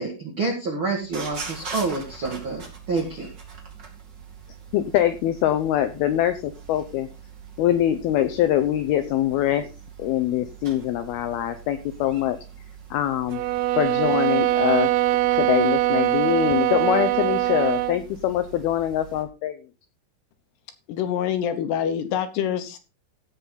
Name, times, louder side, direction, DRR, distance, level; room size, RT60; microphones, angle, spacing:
voice 1, 0.0-3.3, right 3 dB, 60° right, 0 dB, 1.3 m, -28 dB
sound 1, 1.0-19.2, right 6 dB, 35° right, 1.8 m, -42 dB
voice 2, 4.7-7.1 7.6-9.7 10.0-12.4 12.9-13.4 13.8-14.9 15.3-19.6, left 12 dB, 90° left, 10 dB, 2.1 m, -23 dB
sound 2, 13.3-18.0, right 14 dB, 85° right, 3.1 m, -22 dB
voice 3, 20.9-22.8, left 9 dB, 75° left, 9 dB, 2.7 m, -26 dB
16.5 x 5.7 x 3.9 m, 0.29 s
omnidirectional pair, 5.3 m